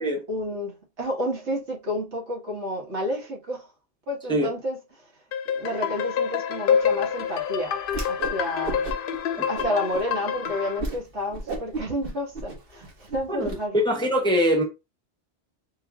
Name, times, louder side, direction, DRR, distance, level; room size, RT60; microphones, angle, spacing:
voice 1, 0.3-3.7 4.1-5.1 5.5-7.8 8.0-8.9 9.5-13.8, left 1 dB, 80° right, 1.7 m, -30 dB
sound 1, 5.3-10.8, left 7 dB, 60° left, 0.6 m, -27 dB
Whoosh swoosh swish, 7.9-8.4 8.6-9.2 9.5-10.0 10.4-10.5 10.8-11.0 11.3-13.5, right 2 dB, 55° right, 1.2 m, -32 dB
voice 2, 13.3-14.6, equal, 5° left, 0.8 m, -23 dB
4.0 x 2.6 x 3.5 m
omnidirectional pair, 1.2 m